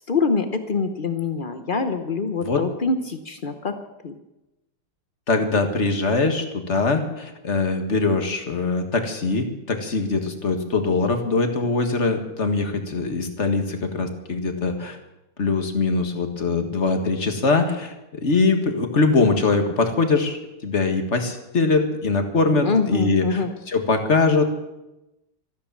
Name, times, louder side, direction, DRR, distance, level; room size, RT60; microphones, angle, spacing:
voice 1, 0.1-3.7 4.0-4.1 22.6-23.5, left 4 dB, 75° left, 8 dB, 0.4 m, -24 dB
voice 2, 5.3-15.0 15.4-24.4, left 3 dB, 35° left, 6 dB, 1.8 m, -22 dB
13.5 x 13.0 x 7.4 m, 0.95 s
omnidirectional pair, 2.3 m